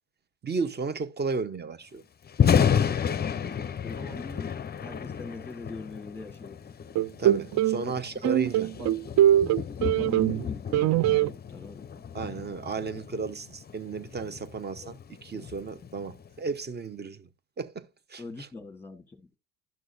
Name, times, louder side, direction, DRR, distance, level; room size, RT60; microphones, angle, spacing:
voice 1, 0.4-2.0 7.2-8.7 12.1-17.3 17.6-18.2, right 4 dB, 25° right, 1.0 m, -34 dB
Thunder, 2.2-16.4, left 8 dB, 25° left, 0.6 m, -31 dB
voice 2, 3.8-6.6 7.7-7.9 8.2-8.4 8.8-9.1 9.8-12.1 18.2-19.4, left 3 dB, 5° left, 1.5 m, -42 dB
sound 1, 7.0-7.8 8.2-10.4 10.7-11.3, right 12 dB, 45° right, 0.4 m, -22 dB
12.0 x 6.2 x 2.6 m
cardioid pair, 115°, 39 cm